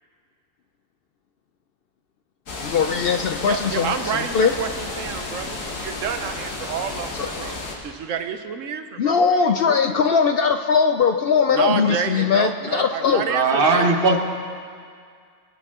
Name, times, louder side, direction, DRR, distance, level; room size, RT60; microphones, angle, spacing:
sound 1, 2.5-7.7, left 2 dB, 90° left, 1.8 m, -32 dB
voice 1, 2.6-4.0 4.3-4.5 7.2-7.3 9.0-13.2, left 6 dB, 60° left, 6 dB, 0.6 m, -20 dB
voice 2, 3.4-7.5 7.8-9.2 11.5-13.9, right 7 dB, 80° right, 8 dB, 1.1 m, -29 dB
voice 3, 13.1-14.2, right 3 dB, 45° right, 3 dB, 1.4 m, -19 dB
23.5 x 9.2 x 3.7 m, 2.1 s
omnidirectional pair, 1.3 m